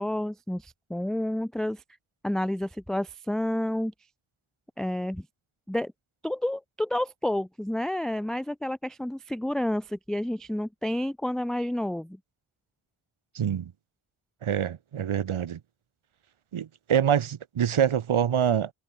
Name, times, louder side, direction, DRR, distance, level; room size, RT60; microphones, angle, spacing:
voice 1, 0.0-1.8 2.2-3.9 4.8-5.3 5.7-5.9 6.2-12.2, left 1 dB, ahead, 0.4 m, -30 dB
voice 2, 13.4-13.7 14.4-15.6 16.5-18.7, right 9 dB, 80° right, 1.6 m, -25 dB
cardioid pair, 60°, 49 cm